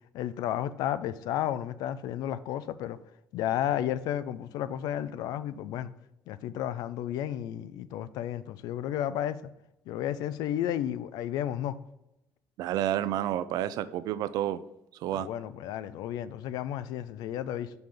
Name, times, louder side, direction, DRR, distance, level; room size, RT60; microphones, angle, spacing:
voice 1, 0.1-3.0 3.3-5.9 6.3-9.5 9.9-11.8 15.1-17.7, left 11 dB, 85° left, 0.5 m, -32 dB
voice 2, 12.6-14.6 15.0-15.3, right 12 dB, 80° right, 0.5 m, -30 dB
6.0 x 5.5 x 5.0 m
cardioid pair, 130°, 7 cm